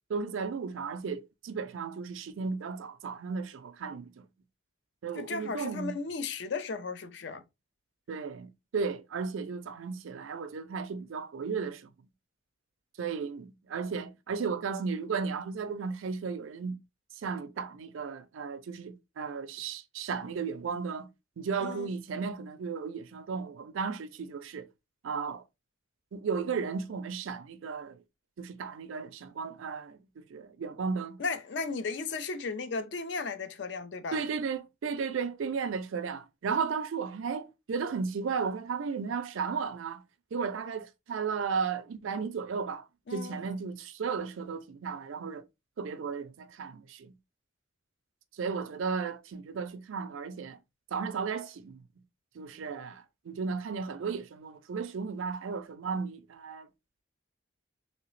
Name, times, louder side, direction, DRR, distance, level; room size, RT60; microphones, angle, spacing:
voice 1, 0.1-4.3 5.0-6.0 8.1-11.9 13.0-16.8 17.2-21.1 21.4-24.7 25.0-25.4 26.1-28.0 28.4-31.2 34.1-40.0 40.3-45.4 45.8-47.1 48.3-50.6 50.9-51.8 52.3-56.7, right 5 dB, 75° right, 0.4 m, -35 dB
voice 2, 5.1-7.5 21.6-21.9 31.2-34.2 43.1-43.4, left 4 dB, 60° left, 0.4 m, -35 dB
3.0 x 2.8 x 3.1 m
head